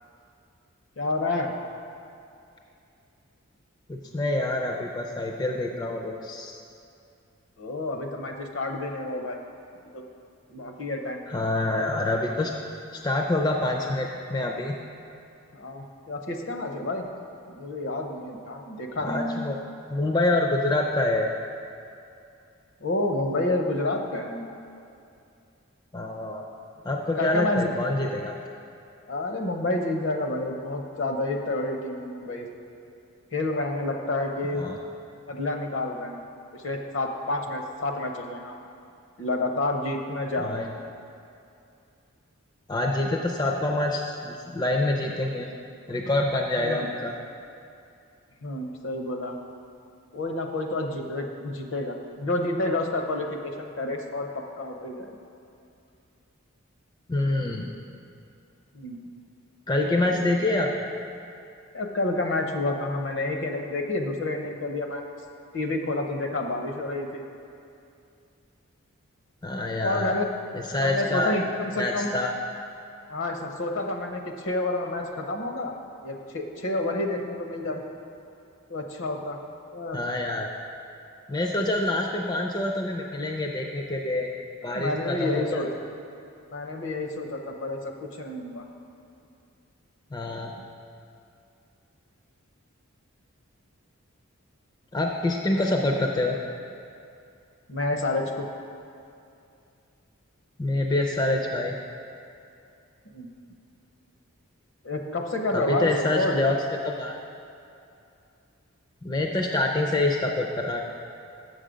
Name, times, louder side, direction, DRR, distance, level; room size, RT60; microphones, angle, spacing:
voice 1, 1.0-1.5 7.6-9.4 9.9-10.0 10.5-11.2 15.5-17.1 17.5-19.5 22.8-24.5 27.1-27.7 29.1-32.5 33.3-34.6 35.3-36.2 36.5-38.6 39.2-40.7 46.6-46.9 48.4-49.4 50.1-55.2 58.7-59.0 60.0-60.2 61.7-65.0 65.5-67.2 69.8-70.3 70.8-72.1 73.1-75.8 76.0-77.9 78.7-79.4 79.7-80.0 81.5-81.6 84.6-85.7 86.5-88.7 97.7-98.5 103.1-103.3 104.8-106.3, left 2 dB, 60° left, 4 dB, 0.7 m, -29 dB
voice 2, 3.9-6.5 11.3-12.5 12.9-14.7 19.0-19.6 19.9-21.3 25.9-26.4 26.8-28.4 34.6-34.8 40.4-40.7 42.7-45.5 45.9-47.1 57.1-57.7 59.7-60.9 69.4-70.1 70.5-71.4 71.8-72.3 79.9-80.5 81.3-84.3 84.6-85.6 90.1-90.5 94.9-96.4 100.6-101.8 105.5-106.6 106.8-107.2 109.0-110.8, left 2 dB, 20° left, 1 dB, 0.4 m, -26 dB
7.3 x 6.4 x 5.0 m, 2.5 s
head